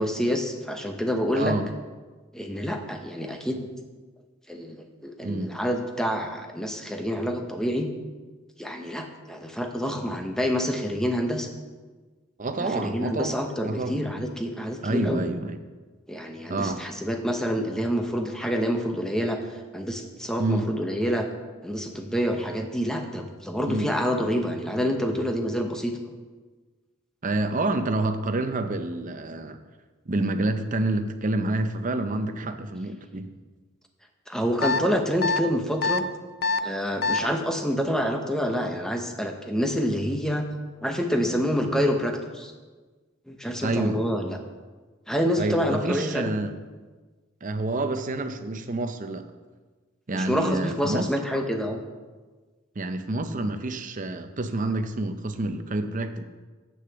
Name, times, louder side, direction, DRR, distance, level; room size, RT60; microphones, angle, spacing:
voice 1, 0.0-1.6 2.3-3.7 4.5-7.9 8.6-11.5 12.6-15.2 16.1-19.4 19.7-21.3 21.6-26.0 34.3-36.0 36.6-40.4 40.8-42.5 43.3-44.4 45.1-46.3 50.1-51.8, equal, 5° left, 4 dB, 0.8 m, -27 dB
voice 2, 1.3-1.7 5.2-5.6 12.4-13.4 13.6-14.0 14.8-15.6 16.5-16.8 20.4-20.7 23.7-23.9 24.4-24.5 27.2-29.6 30.1-33.3 43.6-44.0 45.4-46.5 47.4-49.3 50.1-51.1 52.8-56.2, right 2 dB, 40° right, 8 dB, 0.6 m, -28 dB
sound 1, 34.6-34.8 35.2-35.4 35.8-36.0 36.4-36.6 37.0-37.2, left 4 dB, 50° left, 0.4 m, -23 dB
7.9 x 6.4 x 6.8 m, 1.3 s
head